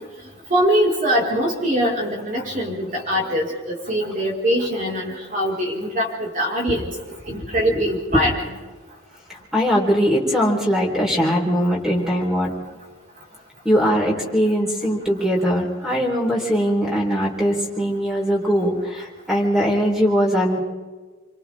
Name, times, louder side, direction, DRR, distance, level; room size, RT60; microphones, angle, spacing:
voice 1, 0.5-6.9 7.3-8.5, equal, 40° right, -2 dB, 5.2 m, -22 dB
voice 2, 9.5-12.5 13.6-20.6, equal, ahead, -1 dB, 4.4 m, -20 dB
27.5 x 25.5 x 3.7 m, 1.3 s
head